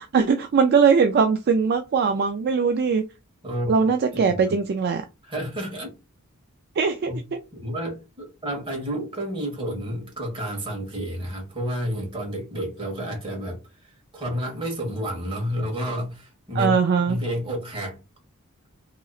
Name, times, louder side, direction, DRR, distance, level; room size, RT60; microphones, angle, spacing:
voice 1, 0.0-3.0 3.7-5.0 6.8-7.2 16.6-17.2, right 5 dB, 45° right, 0.4 m, -20 dB
voice 2, 4.2-4.5 5.2-5.9 7.1-7.2 7.6-18.0, equal, 25° right, 1.5 m, -30 dB
3.8 x 3.0 x 2.4 m
head